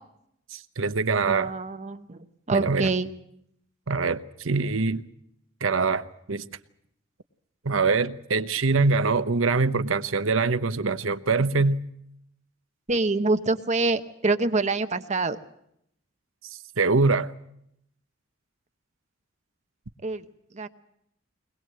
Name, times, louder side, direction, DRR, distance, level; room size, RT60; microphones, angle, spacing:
voice 1, 0.5-1.5 2.5-2.9 3.9-5.0 5.6-6.0 6.3-6.4 7.6-11.8 16.8-17.3, right 4 dB, 80° right, 1.0 m, -23 dB
voice 2, 1.2-2.2 2.5-3.1 12.9-15.4 20.0-20.2 20.5-20.7, right 3 dB, 35° right, 0.9 m, -25 dB
22.0 x 21.0 x 7.6 m
head